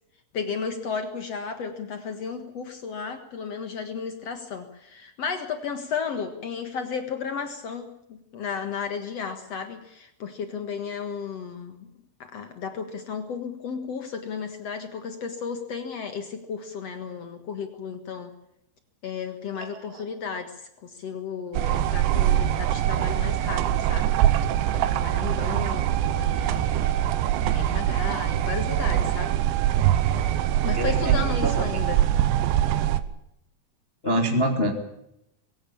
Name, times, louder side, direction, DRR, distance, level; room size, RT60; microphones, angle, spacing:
voice 1, 0.3-11.9 12.2-18.3 19.0-24.2 24.7-27.1 27.4-29.4 30.6-32.0, left 6 dB, 75° left, 8 dB, 1.4 m, -34 dB
voice 2, 19.6-20.0 30.7-31.6 34.0-34.7, equal, 20° left, 3 dB, 1.7 m, -26 dB
sound 1, 21.5-33.0, right 12 dB, 80° right, 3.3 m, -23 dB
23.0 x 16.5 x 8.6 m, 0.81 s
omnidirectional pair, 5.6 m